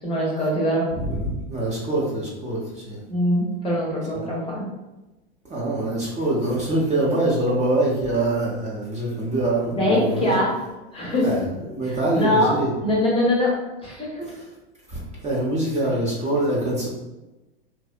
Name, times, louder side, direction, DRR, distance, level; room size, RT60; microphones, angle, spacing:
voice 1, 0.0-0.9 3.0-4.7 9.7-10.6 10.9-11.4 11.8-14.3 16.5-16.6, left 1 dB, 15° left, -4 dB, 0.7 m, -23 dB
voice 2, 1.0-3.0 5.5-10.3 11.2-12.7 14.9-16.9, right 1 dB, 20° right, -5 dB, 0.7 m, -24 dB
2.7 x 2.0 x 2.4 m, 1.0 s
hypercardioid pair, 95°, 31 cm